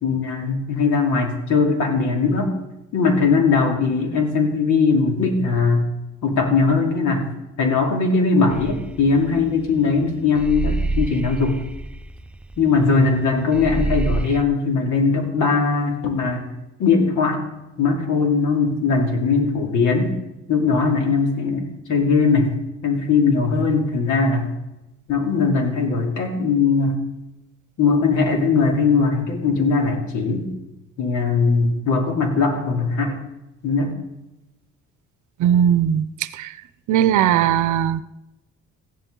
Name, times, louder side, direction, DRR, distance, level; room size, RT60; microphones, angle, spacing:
voice 1, 0.0-2.6 2.9-5.9 6.2-7.3 7.6-11.6 12.6-16.5 16.8-17.4 17.8-20.1 20.5-22.5 22.8-24.5 25.1-27.0 27.8-30.5 31.0-33.2 33.6-34.0, left 4 dB, 80° left, 2 dB, 2.6 m, -20 dB
sound 1, 8.5-10.0 10.3-13.3 13.5-14.4, right 2 dB, 5° right, 0.5 m, -27 dB
voice 2, 35.4-36.6 36.9-38.0, right 10 dB, 75° right, 15 dB, 0.7 m, -19 dB
15.0 x 11.0 x 3.8 m, 0.94 s
cardioid pair, 90°, 30 cm